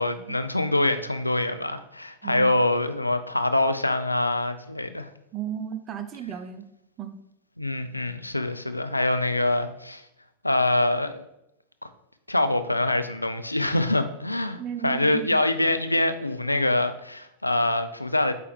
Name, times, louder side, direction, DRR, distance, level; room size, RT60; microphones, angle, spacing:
voice 1, 0.0-5.1 7.6-10.0 10.4-11.2 12.3-18.3, left 2 dB, 85° left, 9 dB, 0.4 m, -25 dB
voice 2, 2.2-2.6 5.3-6.7 7.0-7.2 14.6-15.3, right 9 dB, 30° right, 9 dB, 0.6 m, -34 dB
8.6 x 3.4 x 3.4 m, 0.81 s
figure-of-eight pair, 85°, 0 cm